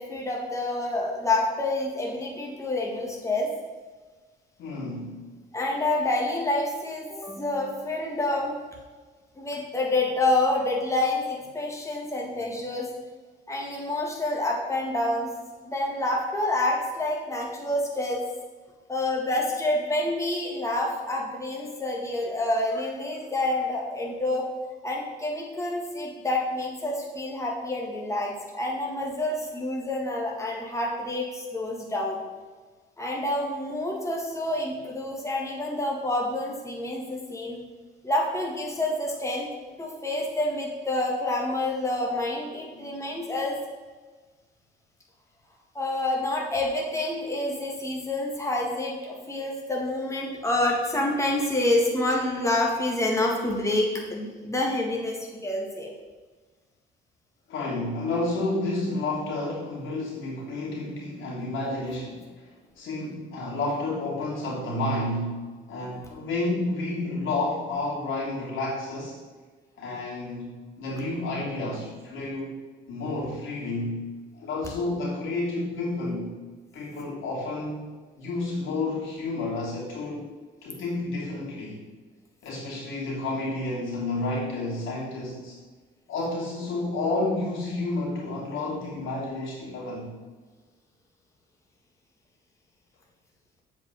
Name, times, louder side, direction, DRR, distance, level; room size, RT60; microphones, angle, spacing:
voice 1, 0.0-3.5 5.5-8.5 9.4-12.9 13.5-15.3 15.6-18.2 18.9-24.5 24.8-32.2 33.0-37.6 38.0-39.5 39.8-43.6 45.7-55.9, left 2 dB, 15° left, -1 dB, 1.9 m, -28 dB
voice 2, 4.6-5.2 22.7-22.9 42.7-43.0 57.5-65.4 65.7-69.2 69.8-72.6 72.9-74.1 74.3-76.3 76.7-77.8 78.2-80.3 80.6-81.8 82.4-85.6 86.1-90.1, left 2 dB, 80° left, -4 dB, 3.0 m, -30 dB
7.8 x 5.2 x 7.0 m, 1.4 s
cardioid pair, 90°, 20 cm